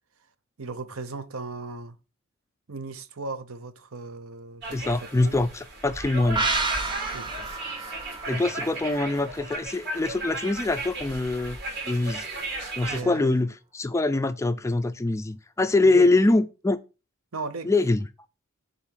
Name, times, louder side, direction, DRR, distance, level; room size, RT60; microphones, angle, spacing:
voice 1, 0.6-2.0 2.7-5.5 7.1-7.5 8.2-8.5 12.9-13.4 15.8-16.1 17.3-17.7, right 3 dB, 75° right, 0.8 m, -37 dB
sound 1, 4.6-13.0, right 2 dB, 50° right, 3.3 m, -35 dB
voice 2, 4.7-6.4 8.3-11.6 11.9-12.3 12.8-16.8 17.6-18.0, left 2 dB, 15° left, 0.3 m, -24 dB
sound 2, 6.4-9.8 10.1-10.2, right 3 dB, 20° right, 0.9 m, -31 dB
7.2 x 4.0 x 6.2 m
head